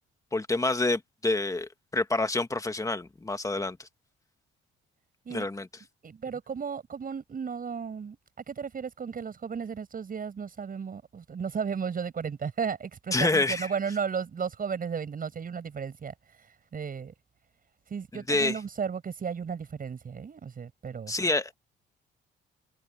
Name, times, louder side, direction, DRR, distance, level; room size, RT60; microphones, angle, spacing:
voice 1, 0.3-3.9 5.3-5.7 13.1-13.7 18.1-18.6 21.1-21.5, left 2 dB, 15° left, 1.8 m, -28 dB
voice 2, 6.0-8.2 8.5-16.1 16.7-17.1 17.9-21.1, right 6 dB, 45° right, 7.8 m, -34 dB
cardioid pair, 90°, 20 cm